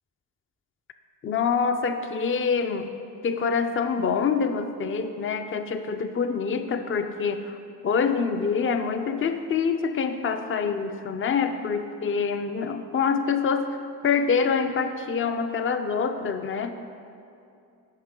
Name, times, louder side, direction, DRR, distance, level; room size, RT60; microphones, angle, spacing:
voice 1, 1.2-2.9 3.2-7.6 7.8-13.7 14.0-16.7, left 5 dB, 30° left, 8 dB, 0.4 m, -26 dB
9.8 x 5.5 x 3.7 m, 2.6 s
cardioid pair, 75°, 44 cm